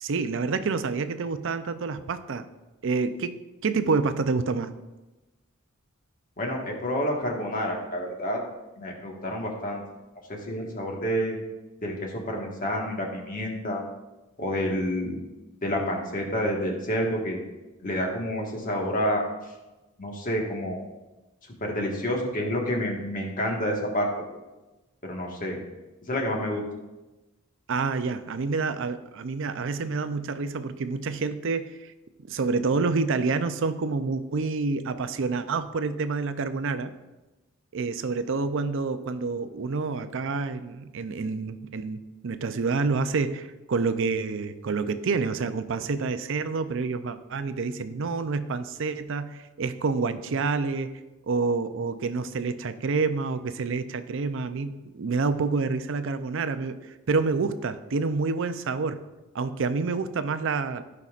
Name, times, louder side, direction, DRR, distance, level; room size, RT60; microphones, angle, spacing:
voice 1, 0.0-2.5 2.8-4.7 27.7-31.9 32.2-36.9 37.7-50.9 51.3-56.8 57.1-59.0 59.3-60.8, right 4 dB, 65° right, 11 dB, 0.5 m, -28 dB
voice 2, 6.4-8.4 8.8-9.8 10.3-11.4 11.8-13.8 14.4-15.2 15.6-17.4 17.8-19.2 20.0-20.9 21.6-24.1 25.0-25.6 26.1-26.6, equal, 45° left, 0 dB, 1.5 m, -28 dB
15.0 x 5.4 x 2.5 m, 1.1 s
head